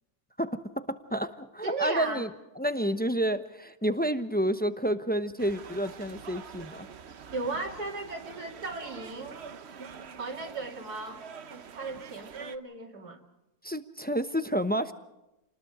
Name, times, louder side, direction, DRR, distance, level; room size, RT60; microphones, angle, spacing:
voice 1, 0.4-2.3 2.6-6.9 13.6-14.9, equal, 10° left, 9 dB, 0.6 m, -29 dB
voice 2, 1.6-2.3 7.3-9.4 10.2-11.2 11.5-13.2, right 3 dB, 70° right, 0 dB, 3.1 m, -36 dB
sound 1, 5.4-12.6, right 6 dB, 50° right, 1.0 m, -46 dB
29.0 x 20.0 x 4.9 m, 0.94 s
omnidirectional pair, 1.7 m